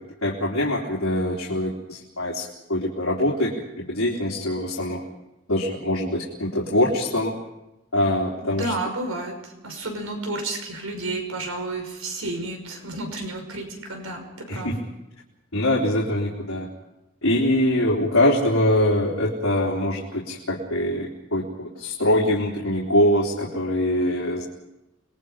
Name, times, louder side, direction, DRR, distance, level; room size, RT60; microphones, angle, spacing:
voice 1, 0.2-5.0 5.5-7.3 7.9-8.7 14.5-14.8 15.5-16.7 17.2-21.5 21.8-24.4, left 1 dB, 80° left, -4 dB, 3.8 m, -23 dB
voice 2, 8.4-9.3 9.6-14.2 14.5-14.7, right 2 dB, 85° right, 4 dB, 5.8 m, -31 dB
30.0 x 21.5 x 5.2 m, 0.94 s
head